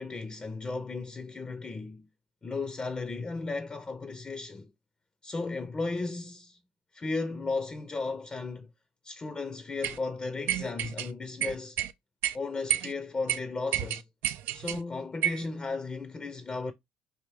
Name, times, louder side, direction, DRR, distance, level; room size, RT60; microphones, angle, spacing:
voice 1, 0.0-2.0 2.4-4.7 5.2-6.6 6.9-8.7 9.0-11.8 12.3-14.0 14.5-16.7, left 3 dB, 25° left, 0.5 m, -35 dB
sound 1, 9.8-10.0 10.5-11.1 11.4-11.9 12.2-12.4 12.7-12.9 13.3-13.4 13.7-14.8 15.2-15.5, right 11 dB, 65° right, 0.3 m, -30 dB
3.4 x 2.5 x 3.3 m
supercardioid pair, 80°, 4 cm